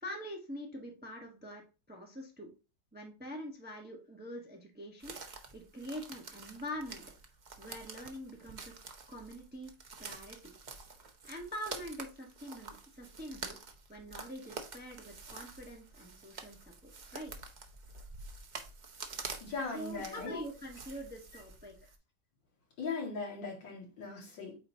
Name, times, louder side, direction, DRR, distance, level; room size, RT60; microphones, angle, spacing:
voice 1, 0.0-1.6 1.9-2.5 2.9-7.0 7.6-8.7 9.1-9.7 10.0-10.5 11.2-13.6 13.9-16.7 17.1-17.3 19.7-21.9, equal, 5° right, 1 dB, 0.8 m, -44 dB
sound 1, 5.0-22.0, right 4 dB, 70° right, 0.4 m, -48 dB
voice 2, 19.4-20.4 22.8-24.6, left 4 dB, 80° left, -1 dB, 2.6 m, -39 dB
8.7 x 4.0 x 2.7 m, 0.32 s
omnidirectional pair, 2.0 m